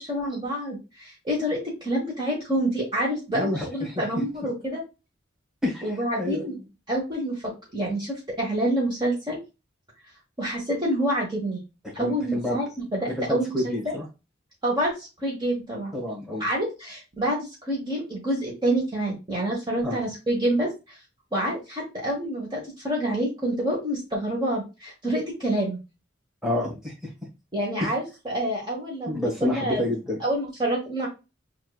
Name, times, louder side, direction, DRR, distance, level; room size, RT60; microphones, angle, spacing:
voice 1, 0.0-4.8 5.8-6.5 6.9-7.4 7.7-9.4 10.4-11.6 11.9-13.9 14.6-15.9 16.4-20.7 21.3-25.8 27.5-29.8 30.2-31.1, right 1 dB, 25° right, -4 dB, 1.3 m, -27 dB
voice 2, 3.3-4.2 5.6-6.7 12.0-12.6 13.2-14.1 15.9-16.5 19.8-20.0 26.4-27.1 27.8-27.9 29.1-30.2, left 1 dB, 5° right, -2 dB, 1.6 m, -29 dB
7.0 x 2.6 x 2.4 m, 0.27 s
head